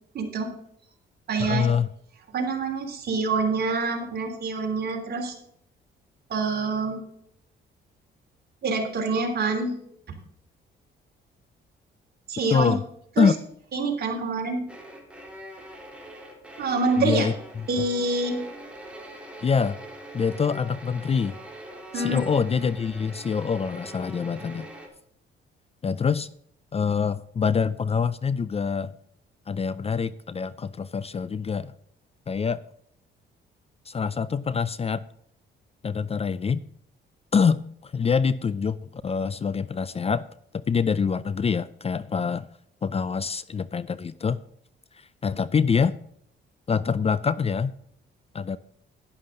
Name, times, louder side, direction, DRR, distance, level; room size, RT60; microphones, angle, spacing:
voice 1, 0.1-0.5 1.3-1.7 2.3-5.3 6.3-7.0 8.6-9.7 10.1-10.2 12.3-12.7 13.2-13.3 13.7-14.7 16.6-17.3 17.7-18.4 21.9-22.2, right 3 dB, 55° right, 2 dB, 3.3 m, -26 dB
voice 2, 1.4-1.9 12.5-12.8 13.2-13.4 17.0-17.7 19.4-19.8 20.1-21.3 21.9-24.7 25.8-26.3 26.7-28.9 29.5-31.7 32.3-32.6 33.9-35.0 35.8-36.6 37.3-40.3 40.5-42.5 42.8-44.4 44.9-45.9 46.7-47.7 48.3-48.6, left 6 dB, 30° left, 17 dB, 0.5 m, -25 dB
sound 1, 14.7-24.9, right 1 dB, 5° right, 3.4 m, -43 dB
11.5 x 11.0 x 3.9 m, 0.69 s
cardioid pair, 90°, 20 cm